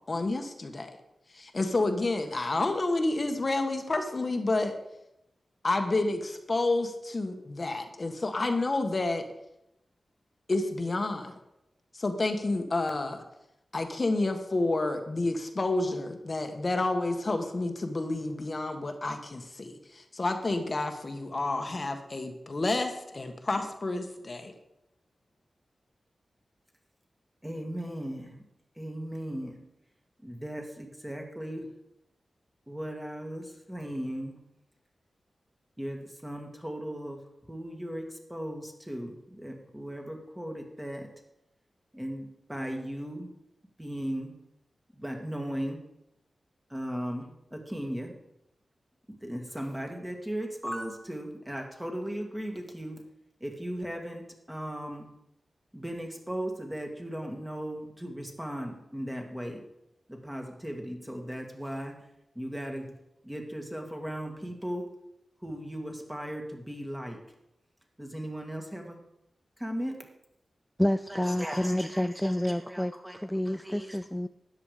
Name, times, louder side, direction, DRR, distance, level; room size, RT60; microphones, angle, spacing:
voice 1, 0.1-0.9 1.3-4.7 5.6-9.2 10.5-11.4 11.9-13.2 13.7-24.5, left 2 dB, 40° left, 1.4 m, -29 dB
voice 2, 27.4-28.4 28.8-29.6 30.2-31.7 32.7-34.4 35.8-37.2 37.5-41.1 41.9-43.3 43.8-44.3 44.9-45.8 46.7-48.2 49.2-53.0 53.4-55.1 55.7-59.6 60.1-61.9 62.4-62.9 63.2-64.9 65.4-67.2 68.0-69.0 69.6-70.0 71.1-73.2 73.6-74.0, equal, 10° right, 2.2 m, -37 dB
voice 3, 70.8-74.3, left 1 dB, 5° left, 0.4 m, -29 dB
13.0 x 10.0 x 5.1 m
wide cardioid pair, 105°, 0 cm